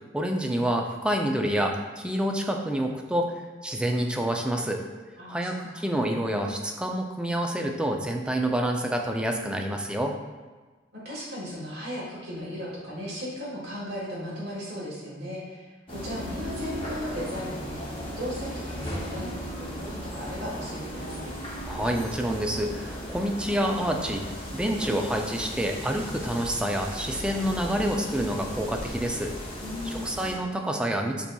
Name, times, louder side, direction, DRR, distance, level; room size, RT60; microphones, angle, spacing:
voice 1, 0.1-3.3 3.6-4.8 5.3-10.1 21.7-24.2 24.5-29.3 30.0-31.3, right 1 dB, 5° right, 2 dB, 0.3 m, -28 dB
voice 2, 5.2-5.8 10.9-21.3 29.6-30.3, equal, 65° right, -7 dB, 1.3 m, -37 dB
sound 1, 15.9-30.3, equal, 30° left, 0.9 m, -36 dB
6.9 x 2.8 x 2.2 m, 1.3 s
head